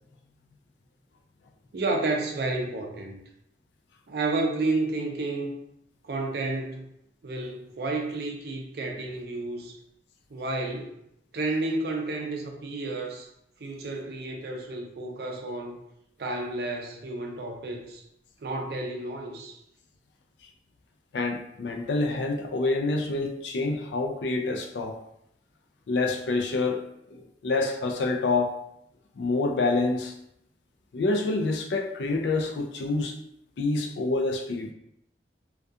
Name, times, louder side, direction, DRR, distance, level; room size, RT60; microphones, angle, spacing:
voice 1, 1.7-3.2 4.1-5.5 6.0-6.9 7.2-9.7 10.3-11.0 11.3-13.3 13.6-15.8 16.2-18.0 18.4-19.6, right 2 dB, 60° right, 2 dB, 0.4 m, -31 dB
voice 2, 21.1-25.0 25.9-26.8 27.1-28.6 29.2-30.1 30.9-33.2 33.6-34.7, left 3 dB, 80° left, 3 dB, 0.4 m, -27 dB
2.3 x 2.3 x 2.6 m, 0.77 s
head